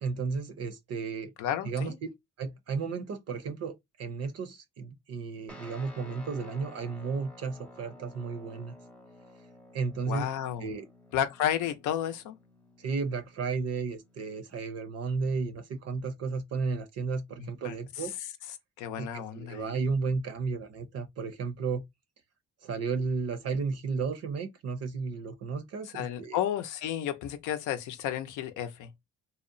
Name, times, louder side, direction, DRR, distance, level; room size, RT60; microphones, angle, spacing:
voice 1, 0.0-1.3 1.7-1.9 2.4-8.7 9.7-10.2 10.6-10.8 12.8-18.1 19.0-21.8 22.6-26.4, right 4 dB, 55° right, 0.6 m, -33 dB
voice 2, 1.4-2.0 10.1-10.7 11.1-12.4 17.4-18.1 18.8-19.9 25.9-28.9, left 10 dB, 85° left, 0.5 m, -32 dB
Guitar, 5.5-14.6, left 1 dB, 5° left, 0.5 m, -53 dB
2.8 x 2.0 x 2.5 m
cardioid pair, 90°, 30 cm